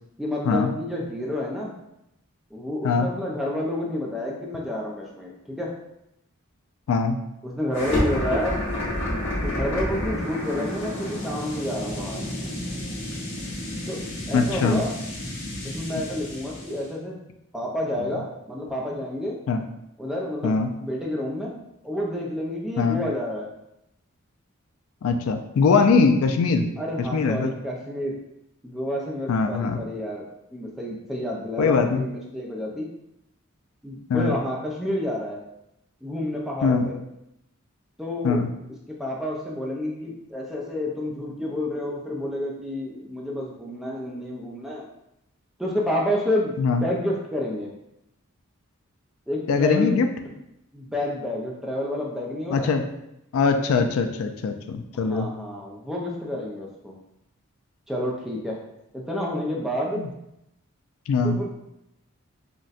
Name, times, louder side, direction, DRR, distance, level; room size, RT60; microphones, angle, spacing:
voice 1, 0.2-1.7 2.5-5.7 7.4-8.6 9.4-12.2 13.9-14.9 15.6-17.2 17.5-19.4 20.0-21.6 21.8-23.5 26.8-28.1 28.6-30.3 30.5-32.9 33.8-35.4 36.0-36.9 38.0-38.4 39.0-44.8 45.6-47.7 49.3-50.1 50.7-52.7 54.9-57.0 57.9-58.6 58.9-60.0 61.2-61.5, left 1 dB, ahead, -3 dB, 0.3 m, -29 dB
voice 2, 6.9-7.2 14.3-14.8 19.5-19.6 20.4-20.7 22.8-23.0 25.0-26.7 27.1-27.5 29.3-29.8 31.6-32.0 34.1-34.3 36.6-36.9 38.2-38.5 46.6-46.8 49.5-50.1 52.5-52.8 53.3-55.3 60.0-60.1 61.1-61.4, left 4 dB, 80° left, 6 dB, 0.3 m, -21 dB
sound 1, 7.7-16.8, left 1 dB, 55° left, 1.0 m, -30 dB
3.9 x 2.1 x 2.4 m, 0.84 s
head